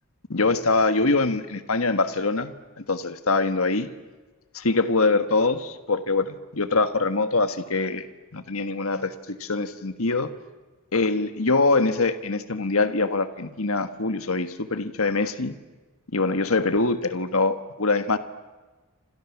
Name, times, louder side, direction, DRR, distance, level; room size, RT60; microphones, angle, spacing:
voice 1, 0.3-3.9 4.5-8.1 8.3-10.3 10.9-15.5 16.1-18.2, left 3 dB, 70° left, 10 dB, 1.5 m, -24 dB
29.0 x 26.5 x 7.3 m, 1.2 s
head